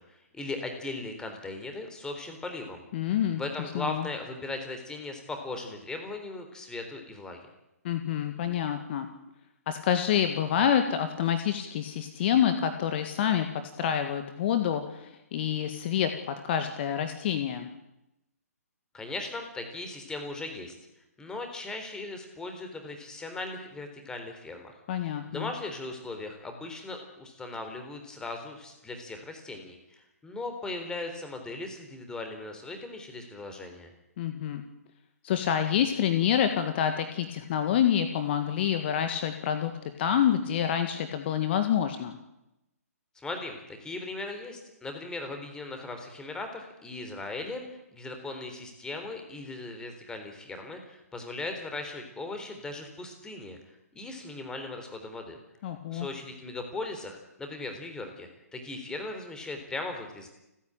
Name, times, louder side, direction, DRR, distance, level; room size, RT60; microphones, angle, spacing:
voice 1, 0.0-7.4 18.9-20.7 21.2-33.9 43.1-53.6 53.9-55.4 55.9-60.3, left 2 dB, 10° left, 5 dB, 3.8 m, -38 dB
voice 2, 2.9-3.4 3.7-4.1 7.8-9.1 9.7-13.5 13.8-17.7 24.9-25.5 34.2-34.6 35.2-39.7 40.0-42.2 55.6-56.1, left 9 dB, 40° left, 7 dB, 1.8 m, -27 dB
30.0 x 10.0 x 9.0 m, 0.90 s
figure-of-eight pair, 130°, 9 cm